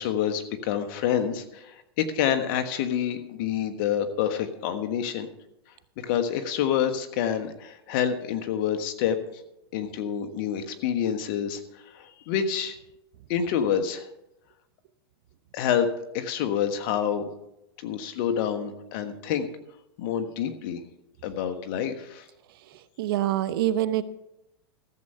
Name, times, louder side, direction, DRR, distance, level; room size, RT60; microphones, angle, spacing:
voice 1, 0.0-5.3 6.0-9.2 9.7-11.6 11.9-12.7 13.3-14.1 15.5-15.9 16.1-17.2 17.8-19.5 20.0-20.8 21.2-22.2, left 9 dB, 55° left, 7 dB, 1.3 m, -27 dB
voice 2, 23.0-24.0, right 13 dB, 65° right, 14 dB, 0.8 m, -25 dB
14.0 x 7.8 x 5.6 m, 0.89 s
hypercardioid pair, 120°, 13 cm